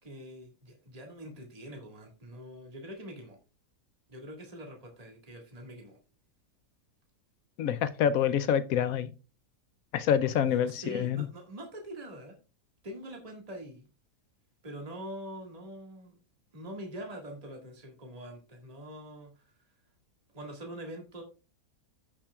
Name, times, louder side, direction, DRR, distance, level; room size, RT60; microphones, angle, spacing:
voice 1, 0.0-3.4 4.1-6.0 10.3-12.4 12.8-13.9 14.6-16.2 16.5-19.5 20.3-21.2, equal, 25° right, 1.8 m, -44 dB
voice 2, 7.6-9.1 9.9-11.3, left 9 dB, 70° left, 1.0 m, -27 dB
15.5 x 5.8 x 2.3 m
omnidirectional pair, 1.7 m